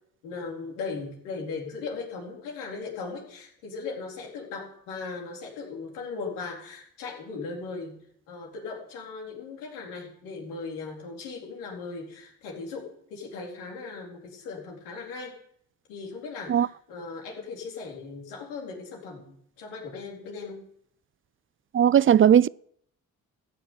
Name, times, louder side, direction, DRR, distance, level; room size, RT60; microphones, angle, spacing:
voice 1, 0.2-8.0 8.3-15.4 15.9-20.6, left 4 dB, 85° left, 4.3 m, -38 dB
voice 2, 21.7-22.5, right 9 dB, 35° right, 0.4 m, -17 dB
14.5 x 7.1 x 8.6 m
hypercardioid pair, 50°, 40 cm